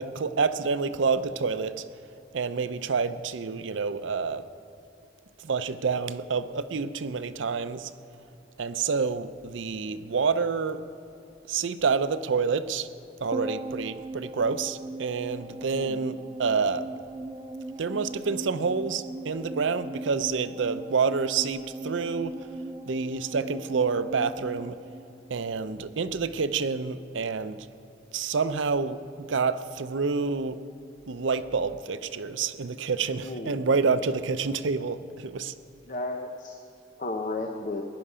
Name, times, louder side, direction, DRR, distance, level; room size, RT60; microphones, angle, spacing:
voice 1, 0.0-1.9 2.3-4.5 5.4-7.9 8.6-10.8 11.5-12.9 13.2-16.9 17.8-22.5 22.9-24.8 25.3-27.7 28.1-30.6 31.1-35.5, right 5 dB, 90° right, 0.6 m, -28 dB
sound 1, 13.3-25.8 26.1-26.2, right 2 dB, 20° right, 0.3 m, -38 dB
voice 2, 33.2-33.7 35.9-36.6 37.0-37.8, left 2 dB, 45° left, 0.8 m, -33 dB
16.5 x 11.0 x 5.0 m
head